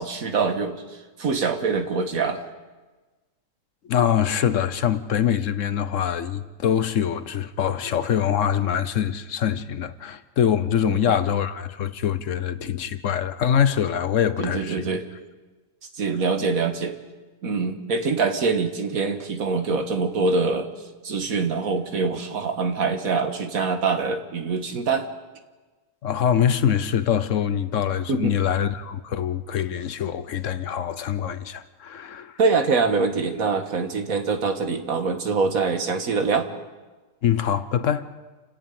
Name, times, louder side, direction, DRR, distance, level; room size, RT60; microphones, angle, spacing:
voice 1, 0.0-2.4 10.8-11.2 14.4-15.0 15.9-17.0 17.4-20.7 21.0-25.1 28.1-28.3 32.4-36.5, right 4 dB, 85° right, 2.0 m, -24 dB
voice 2, 3.9-14.9 26.0-32.4 37.2-38.1, left 9 dB, 65° left, 1.2 m, -24 dB
29.0 x 10.5 x 9.2 m
omnidirectional pair, 1.5 m